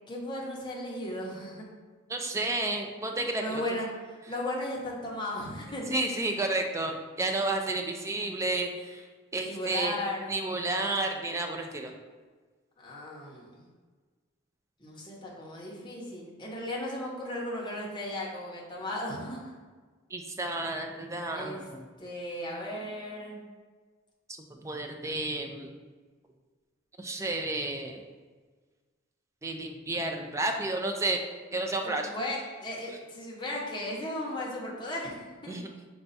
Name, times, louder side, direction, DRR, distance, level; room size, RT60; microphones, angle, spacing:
voice 1, 0.1-1.6 3.4-5.8 9.4-10.4 12.8-13.6 14.8-19.5 21.3-21.6 22.0-23.4 31.8-35.6, left 1 dB, 25° left, -4 dB, 0.8 m, -36 dB
voice 2, 2.1-3.6 5.9-9.1 9.3-10.0 10.3-11.9 20.1-21.8 24.5-25.7 27.0-28.0 29.4-31.2 31.5-32.1 35.5-35.7, right 2 dB, 15° right, 3 dB, 0.3 m, -31 dB
5.2 x 2.3 x 4.0 m, 1.4 s
head